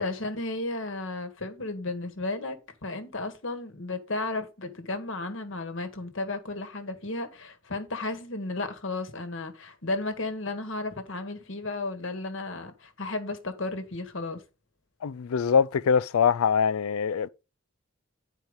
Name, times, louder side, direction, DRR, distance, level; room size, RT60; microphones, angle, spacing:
voice 1, 0.0-14.4, left 2 dB, 60° left, 1.4 m, -34 dB
voice 2, 15.0-17.3, left 6 dB, 80° left, 0.4 m, -23 dB
9.5 x 4.5 x 5.0 m
head